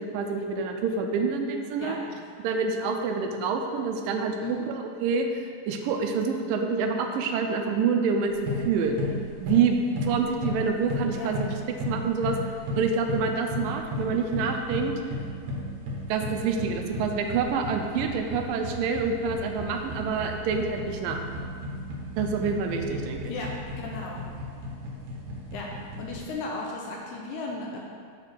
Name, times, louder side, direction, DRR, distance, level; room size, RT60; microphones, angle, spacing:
voice 1, 0.0-2.0 2.4-9.0 9.4-11.5 11.9-12.4 12.8-14.9 16.1-21.2 22.2-23.3, right 5 dB, 80° right, 4 dB, 2.3 m, -27 dB
voice 2, 1.8-2.2 4.4-4.7 11.1-11.3 23.3-24.2 25.5-25.7 26.0-27.8, left 2 dB, 75° left, -1 dB, 2.0 m, -35 dB
sound 1, 8.3-26.3, left 1 dB, 65° right, 2.4 m, -35 dB
7.5 x 6.0 x 4.5 m, 2.1 s
omnidirectional pair, 4.0 m